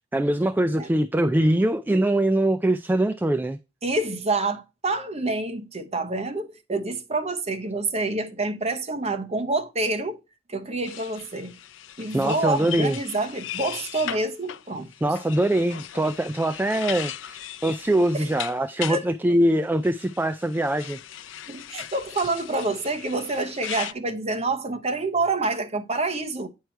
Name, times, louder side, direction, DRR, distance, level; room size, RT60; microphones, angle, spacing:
voice 1, 0.1-3.6 12.1-13.0 15.0-21.0, right 1 dB, 10° right, 0.3 m, -23 dB
voice 2, 3.8-10.2 10.5-11.6 12.0-14.9 18.1-18.3 18.9-19.0 21.5-26.5, right 2 dB, 35° right, 1.0 m, -27 dB
sound 1, 10.9-19.0 19.8-23.9, left 11 dB, 80° left, 0.4 m, -38 dB
9.2 x 4.7 x 4.5 m
head